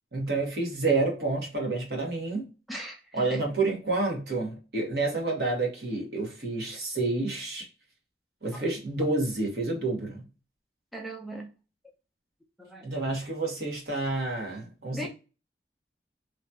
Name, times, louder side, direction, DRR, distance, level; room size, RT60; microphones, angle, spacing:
voice 1, 0.1-2.5 3.1-7.7 8.4-10.3 12.8-15.1, right 3 dB, 65° right, 1.1 m, -29 dB
voice 2, 2.7-3.4 8.5-8.6 10.9-11.5 12.6-12.9 14.9-15.1, equal, ahead, 0.4 m, -38 dB
2.9 x 2.2 x 2.6 m
head